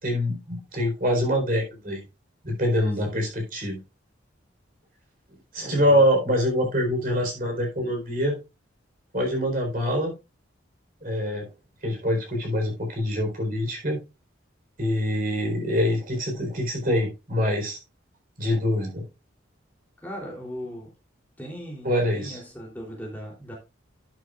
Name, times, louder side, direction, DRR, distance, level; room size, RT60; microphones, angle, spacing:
voice 1, 0.0-2.0 2.4-3.8 5.5-8.4 9.1-10.1 11.0-11.5 11.8-14.0 14.8-17.8 18.4-19.0 21.8-22.4, equal, 45° right, 4.3 m, -25 dB
voice 2, 5.7-6.0 20.0-20.9 21.4-23.5, equal, 10° left, 3.4 m, -38 dB
12.0 x 9.0 x 2.5 m
head